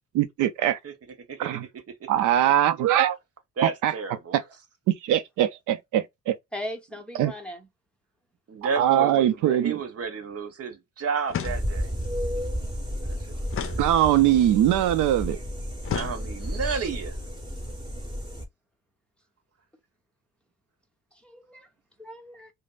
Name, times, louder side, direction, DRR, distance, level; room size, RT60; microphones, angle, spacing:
voice 1, 0.1-0.8 1.4-1.6 2.1-3.2 3.6-3.9 4.3-4.4 4.9-6.4 7.1-7.3 8.8-9.8 13.8-15.4, right 12 dB, 85° right, 0.5 m, -22 dB
voice 2, 1.3-2.1 3.6-4.4 8.5-11.9 13.0-13.9 15.9-17.2, right 5 dB, 50° right, 1.1 m, -32 dB
voice 3, 6.5-7.7 12.4-12.7 21.2-21.7 22.0-22.5, left 1 dB, 5° left, 1.0 m, -38 dB
sound 1, 11.3-12.0 13.5-14.5 15.8-16.7, left 9 dB, 45° left, 0.6 m, -35 dB
sound 2, 11.4-18.4, equal, 15° right, 1.4 m, -32 dB
5.0 x 2.1 x 2.5 m
cardioid pair, 90°, 30 cm